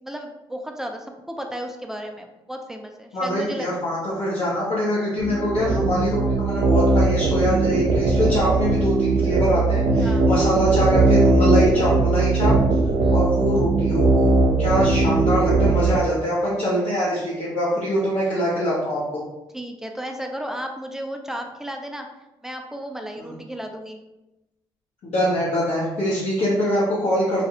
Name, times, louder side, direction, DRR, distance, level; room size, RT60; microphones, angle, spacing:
voice 1, 0.0-3.7 10.0-10.3 13.0-13.2 19.5-22.1 22.4-24.0, equal, 5° right, 3 dB, 0.4 m, -34 dB
voice 2, 3.1-12.5 13.1-19.0 25.0-27.5, equal, 65° left, -10 dB, 0.9 m, -23 dB
sound 1, 5.2-16.0, right 3 dB, 60° right, 0.4 m, -19 dB
2.4 x 2.3 x 2.8 m, 0.98 s
hypercardioid pair, 45°, 12 cm